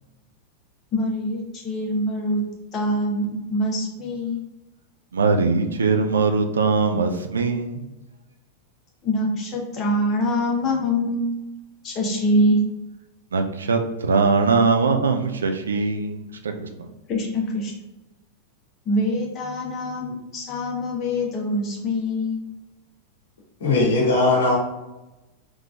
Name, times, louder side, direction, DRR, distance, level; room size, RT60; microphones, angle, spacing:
voice 1, 0.9-2.4 2.7-4.4 9.0-11.3 11.8-12.6 17.1-17.7 18.8-22.4, left 1 dB, 30° left, -1 dB, 1.0 m, -24 dB
voice 2, 5.1-7.8 13.3-16.9, right 4 dB, 70° right, 5 dB, 0.4 m, -21 dB
voice 3, 23.6-24.6, left 2 dB, 60° left, -2 dB, 1.1 m, -19 dB
3.7 x 3.1 x 2.4 m, 1.0 s
figure-of-eight pair, 90°, 0 cm